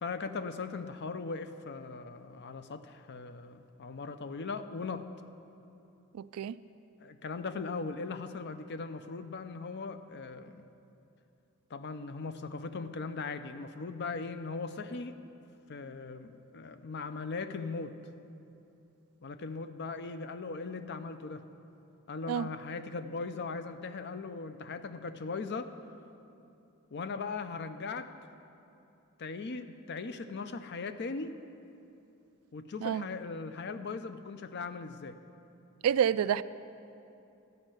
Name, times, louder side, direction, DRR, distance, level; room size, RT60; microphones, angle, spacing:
voice 1, 0.0-5.0 7.0-10.7 11.7-15.2 15.7-17.9 19.2-21.4 22.1-25.7 26.9-28.1 29.2-31.4 32.5-35.2, left 4 dB, 55° left, 10 dB, 0.5 m, -39 dB
voice 2, 6.1-6.6 22.3-22.5 32.8-33.1 35.8-36.4, right 8 dB, 90° right, 15 dB, 0.3 m, -28 dB
13.0 x 5.3 x 8.9 m, 2.7 s
head